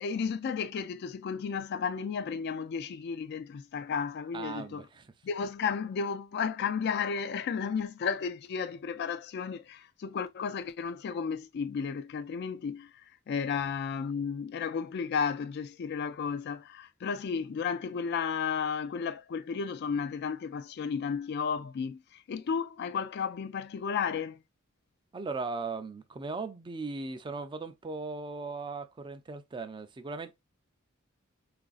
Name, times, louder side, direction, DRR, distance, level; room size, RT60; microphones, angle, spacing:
voice 1, 0.0-4.9 5.2-24.4, left 6 dB, 55° left, 0.3 m, -33 dB
voice 2, 4.3-5.1 25.1-30.3, right 3 dB, 25° right, 0.4 m, -38 dB
3.9 x 2.5 x 2.3 m
head